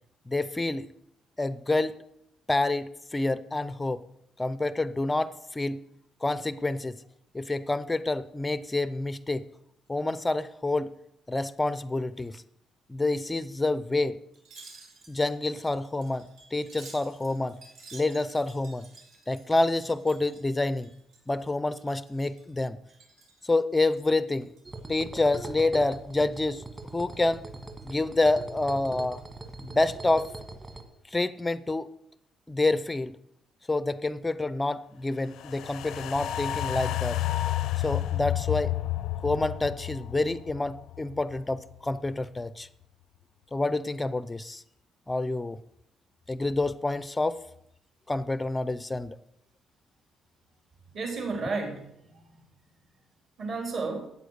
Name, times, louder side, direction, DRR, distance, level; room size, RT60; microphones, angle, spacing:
voice 1, 0.3-0.9 1.4-2.0 2.5-4.0 4.4-5.8 6.2-7.0 7.3-9.5 9.9-10.9 11.3-12.4 12.9-14.2 15.1-17.6 17.9-18.9 19.3-20.9 21.3-22.8 23.4-24.5 24.9-26.6 26.9-27.4 27.8-29.2 29.6-30.3 31.1-31.9 32.5-33.2 33.7-37.2 37.8-38.7 39.2-42.7 43.5-44.6 45.1-45.6 46.3-47.4 48.1-49.2, left 2 dB, 10° left, 15 dB, 0.5 m, -28 dB
Wind chime, 14.3-21.4 21.7-22.5 22.9-23.4 23.9-24.8 25.2-25.3, right 4 dB, 80° right, 4.3 m, -52 dB
sound 1, 24.7-30.8, right 2 dB, 20° right, 1.5 m, -41 dB
sound 2, 35.3-41.7 42.1-42.2, left 13 dB, 75° left, 0.5 m, -31 dB
voice 2, 50.9-52.4 53.4-54.1, right 4 dB, 45° right, 2 dB, 3.7 m, -33 dB
13.5 x 8.5 x 6.5 m, 0.77 s
cardioid pair, 180°, 0 cm